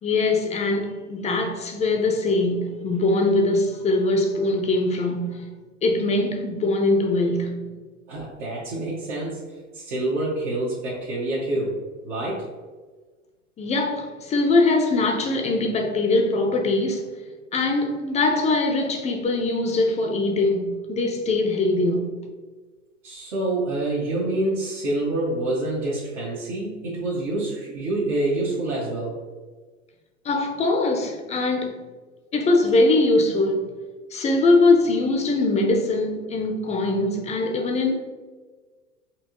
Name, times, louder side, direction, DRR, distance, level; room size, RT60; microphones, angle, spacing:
voice 1, 0.0-5.6 5.8-7.8 13.6-17.1 17.5-22.1 30.2-31.8 32.3-33.7 34.1-38.0, left 2 dB, 20° left, 0.4 m, -22 dB
voice 2, 8.1-9.5 9.7-12.5 23.0-29.2, right 2 dB, 70° right, 1.2 m, -27 dB
4.4 x 2.7 x 3.0 m
hypercardioid pair, 95°, 37 cm